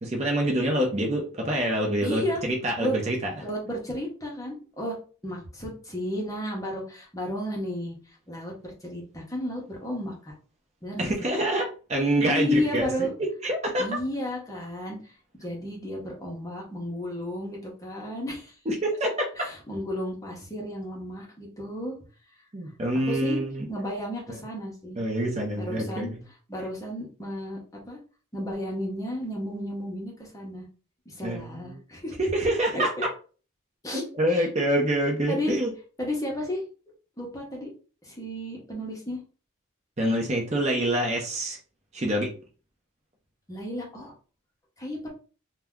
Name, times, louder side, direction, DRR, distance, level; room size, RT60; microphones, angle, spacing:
voice 1, 0.0-3.3 11.0-13.9 18.7-19.3 22.5-23.7 25.0-26.1 31.2-31.8 32.2-32.9 33.9-35.7 40.0-41.6 41.9-42.3, right 1 dB, 30° right, 1 dB, 0.6 m, -26 dB
voice 2, 2.0-2.4 2.8-2.9 3.4-5.0 5.2-10.3 10.8-11.1 12.2-13.1 13.8-18.5 19.4-21.9 23.1-23.4 23.7-25.0 25.5-26.1 26.5-27.6 27.9-28.0 28.3-30.6 31.1-32.2 32.7-33.0 33.8-34.0 34.3-34.5 35.3-35.6 36.0-36.6 37.2-37.7 38.0-39.2 43.5-44.1 44.8-45.1, left 1 dB, 15° left, -1 dB, 0.8 m, -33 dB
2.7 x 2.2 x 3.5 m, 0.38 s
head